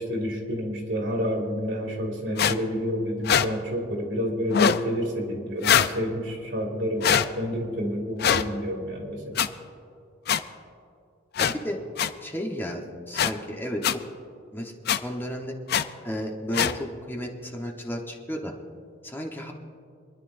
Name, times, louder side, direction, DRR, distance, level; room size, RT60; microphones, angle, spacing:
voice 1, 0.0-9.4, equal, 65° right, 1 dB, 2.4 m, -29 dB
sound 1, 2.4-2.5 3.2-3.5 4.5-4.8 5.6-5.9 7.0-7.3 8.2-8.4 9.4-9.5 10.3-10.4 11.4-11.5 12.0-12.1 13.1-13.3 13.8-13.9 14.9-15.0 15.7-15.8 16.5-16.7, left 8 dB, 55° left, 0.4 m, -22 dB
voice 2, 11.4-11.8 12.2-14.0 14.5-15.5 16.0-18.5 19.0-19.5, equal, 10° left, 1 dB, 1.0 m, -33 dB
25.5 x 11.0 x 2.6 m, 2.4 s
head